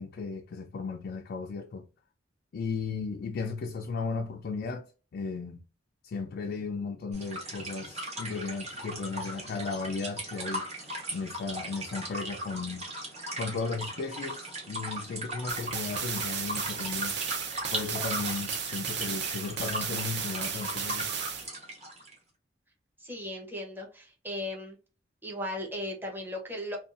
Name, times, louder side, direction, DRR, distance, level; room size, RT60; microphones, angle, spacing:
voice 1, 0.0-1.9 2.5-4.9 5.1-5.6 6.0-10.6 11.1-12.9 13.4-17.2 17.7-21.1, left 4 dB, 55° left, 0.3 m, -35 dB
sound 1, 7.1-22.1, right 1 dB, 35° right, 1.1 m, -38 dB
sound 2, 15.5-21.5, right 7 dB, 65° right, 0.5 m, -34 dB
voice 2, 23.0-24.8 25.2-26.8, left 1 dB, 10° right, 0.7 m, -37 dB
2.6 x 2.3 x 2.4 m
head